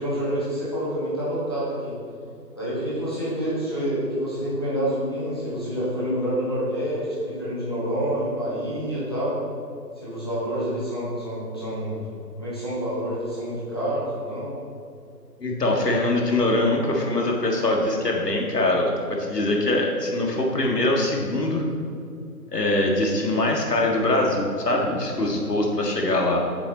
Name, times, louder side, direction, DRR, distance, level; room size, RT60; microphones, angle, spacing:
voice 1, 0.0-1.9 2.6-9.3 10.0-12.0 12.4-14.5, equal, 15° left, -10 dB, 1.2 m, -27 dB
voice 2, 15.4-18.9 19.2-21.6 22.5-26.4, left 2 dB, 70° left, 0 dB, 1.8 m, -23 dB
7.7 x 6.9 x 4.1 m, 2.4 s
figure-of-eight pair, 175°, 49 cm